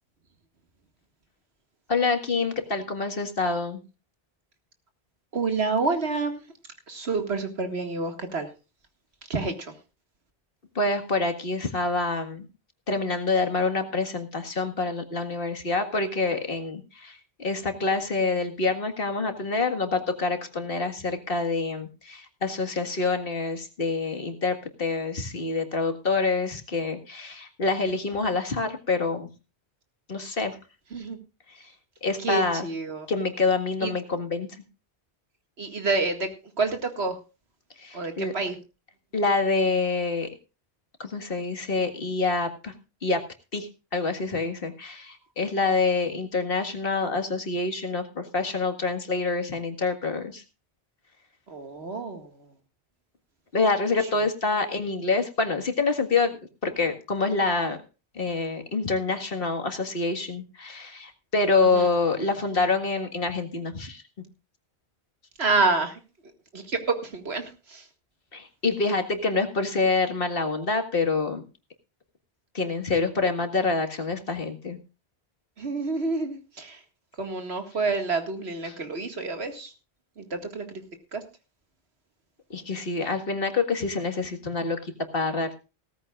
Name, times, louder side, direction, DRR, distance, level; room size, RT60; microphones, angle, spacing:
voice 1, 1.9-3.8 10.8-12.5 12.9-29.3 30.1-30.6 32.0-32.7 33.1-34.5 37.8-38.3 39.1-40.3 41.0-42.7 43.0-43.2 43.5-50.4 53.5-56.4 56.6-57.8 58.2-64.0 68.3-71.4 72.5-74.8 78.6-78.8 82.5-85.6, left 3 dB, 60° left, 6 dB, 2.0 m, -26 dB
voice 2, 5.3-6.4 6.9-8.5 9.3-9.5 30.9-31.2 32.2-33.1 33.8-33.9 35.6-36.3 36.6-37.2 37.9-38.5 51.5-52.3 61.7-61.9 65.4-65.9 66.5-67.4 67.7-67.8 75.6-76.8 77.2-79.7 80.2-80.8 81.1-81.2, right 3 dB, 80° right, 6 dB, 2.2 m, -28 dB
17.5 x 14.0 x 2.4 m, 0.31 s
omnidirectional pair, 1.1 m